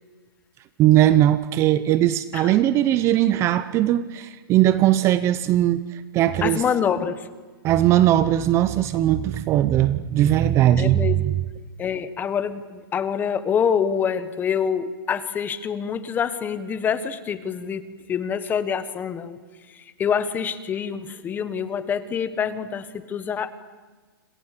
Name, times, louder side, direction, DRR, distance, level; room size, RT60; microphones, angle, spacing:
voice 1, 0.8-6.6 7.6-11.0, right 13 dB, 25° right, 14 dB, 0.7 m, -19 dB
voice 2, 6.4-7.3 10.8-11.2 11.8-19.4 19.7-23.5, left 7 dB, 15° left, 13 dB, 1.3 m, -26 dB
29.5 x 27.5 x 6.8 m, 1.4 s
hypercardioid pair, 155°, 12 cm